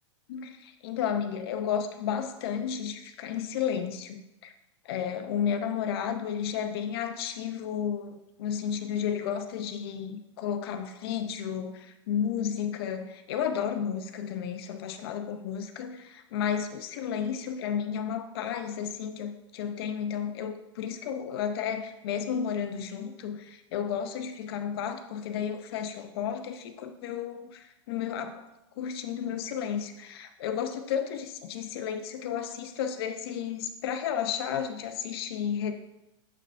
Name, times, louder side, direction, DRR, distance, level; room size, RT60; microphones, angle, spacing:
voice 1, 0.3-4.5 4.8-28.4 28.8-35.7, left 8 dB, 55° left, 7 dB, 0.7 m, -32 dB
7.8 x 5.5 x 2.5 m, 0.92 s
supercardioid pair, 145°, 15 cm